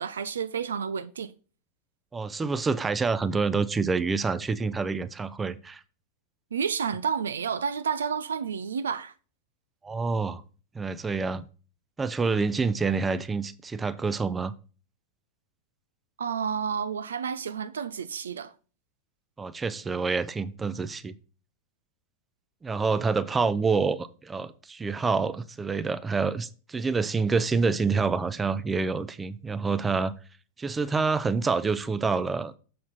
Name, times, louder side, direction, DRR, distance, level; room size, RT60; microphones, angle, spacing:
voice 1, 0.0-1.3 6.5-9.1 16.2-18.5, right 7 dB, 70° right, 0.4 m, -30 dB
voice 2, 2.1-5.8 9.8-10.4 10.7-11.4 12.0-14.5 19.4-21.1 22.6-30.1 30.6-32.6, right 4 dB, 15° right, 0.5 m, -27 dB
7.1 x 6.5 x 4.0 m
figure-of-eight pair, 90°, 0 cm